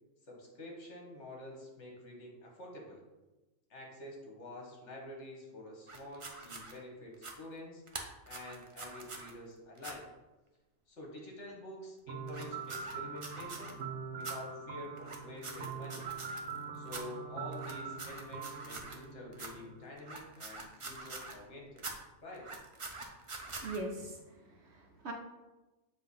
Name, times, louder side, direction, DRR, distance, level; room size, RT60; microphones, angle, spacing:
voice 1, 0.2-3.0 3.7-7.8 8.2-10.1 10.9-13.8 14.2-16.1 16.7-21.8 22.2-22.5, left 1 dB, 55° left, -1 dB, 1.6 m, -48 dB
sound 1, 5.9-6.7 7.1-7.3 7.9-9.3 9.8-9.9 12.3-13.7 14.2-14.3 15.0-16.6 16.9-17.0 17.5-19.0 19.3-19.5 20.0-21.4 21.8-21.9 22.3-23.8, right 3 dB, 35° right, 0.5 m, -45 dB
sound 2, 12.1-19.9, right 5 dB, 75° right, 1.2 m, -43 dB
voice 2, 23.6-25.1, right 2 dB, 55° right, 1 dB, 1.0 m, -42 dB
7.5 x 2.8 x 5.4 m, 1.1 s
omnidirectional pair, 1.5 m